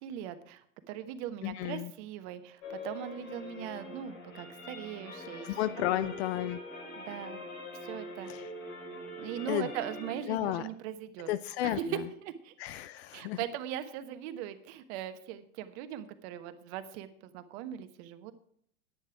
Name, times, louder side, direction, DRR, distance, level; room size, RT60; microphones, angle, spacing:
voice 1, 0.0-6.2 7.0-7.5 7.8-8.3 9.2-11.3 11.6-12.5 13.1-17.1 17.3-18.3, right 10 dB, 50° right, 10 dB, 1.2 m, -40 dB
voice 2, 1.4-1.9 5.4-6.6 8.3-8.5 9.5-9.7 10.3-10.7 11.3-11.8 12.6-13.4, left 14 dB, 50° left, 14 dB, 0.6 m, -32 dB
sound 1, 2.6-10.2, left 2 dB, 65° left, 3.3 m, -44 dB
11.0 x 9.6 x 4.8 m, 0.66 s
figure-of-eight pair, 90°, 42 cm